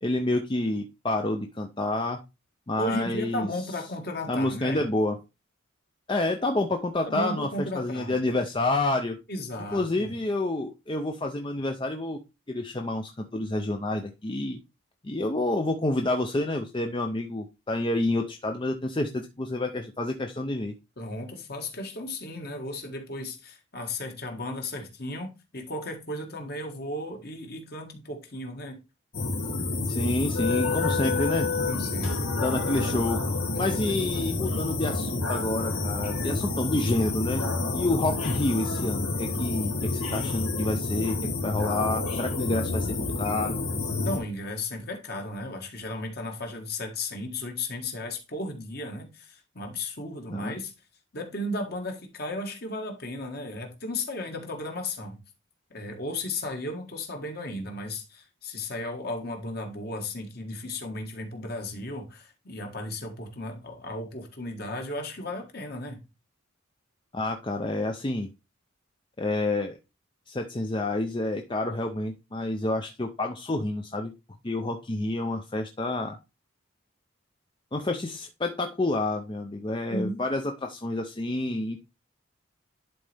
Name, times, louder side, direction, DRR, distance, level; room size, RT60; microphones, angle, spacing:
voice 1, 0.0-2.2 2.7-3.5 4.3-5.2 6.1-9.2 9.7-12.2 12.5-14.6 15.0-20.7 29.9-31.5 32.4-33.3 33.6-37.4 37.7-43.6 50.3-50.6 67.1-68.3 69.2-69.8 70.3-74.1 74.4-76.2 77.7-81.8, left 2 dB, 25° left, 0.5 m, -28 dB
voice 2, 2.8-4.8 7.0-8.2 9.3-10.1 21.0-28.8 31.7-33.0 33.5-33.8 43.9-50.7 51.1-55.2 55.7-66.0 79.9-80.2, left 1 dB, 50° left, 1.6 m, -35 dB
sound 1, 29.1-44.2, left 3 dB, 85° left, 2.3 m, -29 dB
11.0 x 4.1 x 3.4 m
head